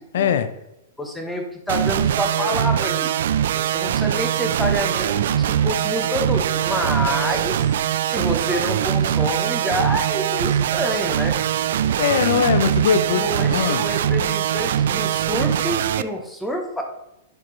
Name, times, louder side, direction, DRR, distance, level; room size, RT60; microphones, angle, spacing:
voice 1, 0.1-0.5 11.9-13.8, left 7 dB, 65° left, 0.5 m, -21 dB
voice 2, 1.0-3.1 3.5-7.7 8.0-11.4 13.1-16.8, equal, 5° left, 0.9 m, -27 dB
sound 1, 1.7-16.0, right 10 dB, 65° right, 0.3 m, -22 dB
10.5 x 4.3 x 3.2 m
supercardioid pair, 165°, 0 cm